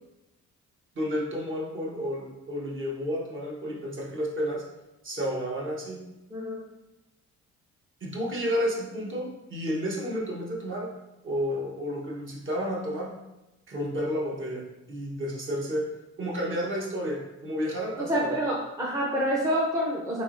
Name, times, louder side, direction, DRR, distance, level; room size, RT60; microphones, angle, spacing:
voice 1, 1.0-4.6 5.0-6.0 8.0-10.9 11.2-13.1 13.7-15.8 16.2-18.3, equal, 40° right, -3 dB, 1.0 m, -31 dB
voice 2, 6.3-6.6 18.0-20.2, equal, 10° right, -4 dB, 0.6 m, -27 dB
3.4 x 2.8 x 2.5 m, 0.98 s
cardioid pair, 90°, 30 cm